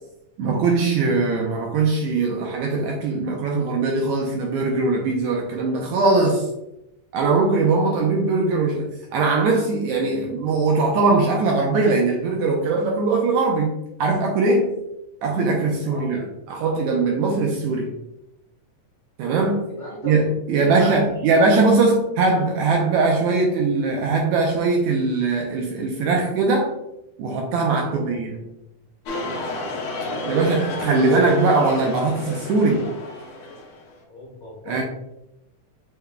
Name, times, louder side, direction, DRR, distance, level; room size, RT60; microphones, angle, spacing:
voice 1, 0.4-6.5 7.1-13.7 14.0-14.7 15.2-17.9 19.2-19.7 20.0-26.7 27.2-28.4 30.2-32.9 34.7-34.8, right 3 dB, 80° right, 0 dB, 1.7 m, -21 dB
voice 2, 19.7-20.2 20.6-20.9 21.3-21.4 27.8-28.1 29.6-30.1 34.1-34.8, equal, 85° left, -6 dB, 0.8 m, -36 dB
sound 1, 29.0-33.9, left 2 dB, 70° left, 1.8 m, -31 dB
6.5 x 3.4 x 2.2 m, 0.86 s
omnidirectional pair, 3.8 m